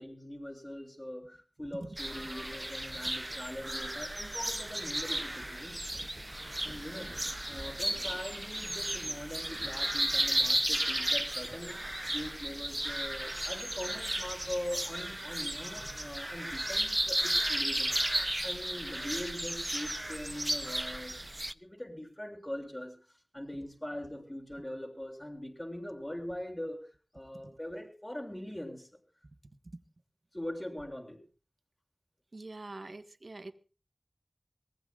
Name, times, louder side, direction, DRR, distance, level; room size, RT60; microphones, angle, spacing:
voice 1, 0.0-5.8 6.6-11.8 12.1-17.9 18.4-21.2 21.5-23.0 23.3-26.8 27.1-28.9 30.3-31.2, left 1 dB, 25° left, 2 dB, 6.9 m, -42 dB
sound 1, 2.0-21.5, right 1 dB, 25° right, 0.8 m, -34 dB
voice 2, 32.3-33.5, right 2 dB, 75° right, 10 dB, 1.6 m, -45 dB
23.5 x 20.0 x 2.5 m, 0.36 s
wide cardioid pair, 50°, 0 cm